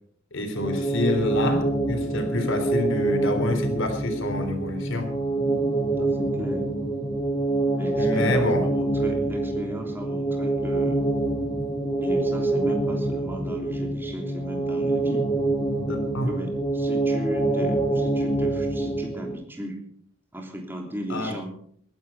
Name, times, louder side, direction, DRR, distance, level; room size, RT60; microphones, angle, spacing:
voice 1, 0.3-5.1 8.0-8.7 15.9-16.3 21.1-21.3, left 2 dB, 65° left, 5 dB, 3.6 m, -27 dB
sound 1, 0.5-19.4, right 2 dB, 20° left, 2.9 m, -26 dB
voice 2, 6.0-6.7 7.7-11.0 12.0-15.3 16.3-19.8 20.3-21.5, equal, 10° right, 1 dB, 3.2 m, -36 dB
20.5 x 10.5 x 5.4 m, 0.62 s
head